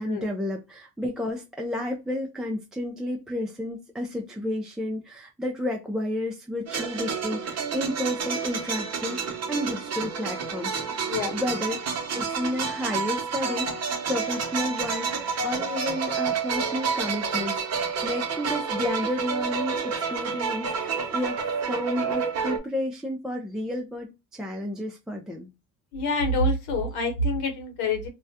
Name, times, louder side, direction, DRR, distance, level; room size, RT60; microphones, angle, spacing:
voice 1, 0.0-21.4 21.7-25.5, left 1 dB, ahead, 0.3 m, -31 dB
sound 1, 6.7-22.6, right 5 dB, 40° right, 0.7 m, -29 dB
voice 2, 25.9-28.1, left 1 dB, 80° left, 1.0 m, -26 dB
2.3 x 2.1 x 2.6 m
supercardioid pair, 90°, 38 cm